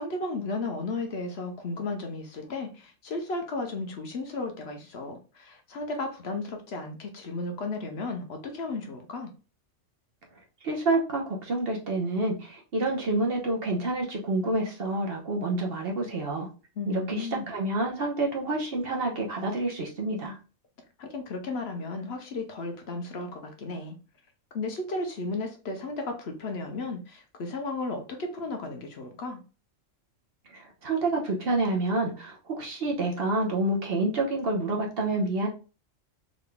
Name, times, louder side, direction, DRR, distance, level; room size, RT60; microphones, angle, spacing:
voice 1, 0.0-9.3 16.8-17.4 21.0-24.0 24.5-29.4, left 3 dB, 60° left, 0.9 m, -34 dB
voice 2, 10.6-16.5 16.9-20.4 30.5-35.5, right 2 dB, 55° right, 1.1 m, -28 dB
3.8 x 3.5 x 2.2 m
omnidirectional pair, 1.3 m